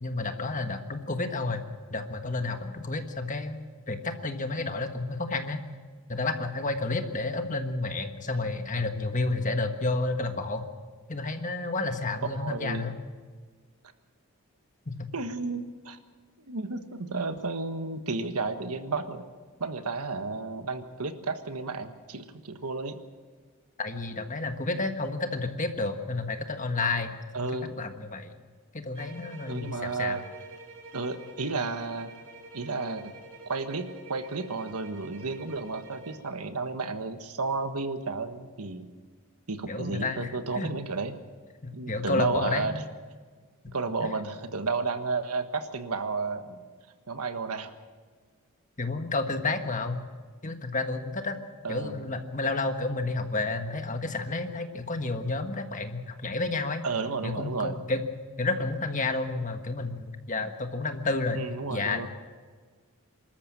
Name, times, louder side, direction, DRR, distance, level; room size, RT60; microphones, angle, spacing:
voice 1, 0.0-3.6 3.9-5.6 6.1-10.6 11.1-13.0 14.9-15.1 23.8-28.3 28.7-30.2 39.7-40.7 41.6-42.8 44.0-44.1 48.8-50.0 50.4-51.4 51.7-56.8 57.2-58.0 58.4-61.4 61.7-62.1, left 3 dB, 35° left, 6 dB, 1.5 m, -31 dB
voice 2, 12.3-12.9 15.1-16.0 16.5-19.2 19.6-23.0 27.3-27.8 29.5-30.2 30.9-32.1 32.5-33.1 33.5-38.9 39.5-41.2 41.7-42.7 43.7-46.6 47.1-47.7 51.6-52.1 56.8-57.7 61.3-62.1, right 3 dB, 85° right, 8 dB, 1.5 m, -32 dB
sound 1, 28.9-36.3, right 3 dB, 60° right, 3.4 m, -48 dB
25.5 x 13.5 x 7.5 m, 1.5 s
head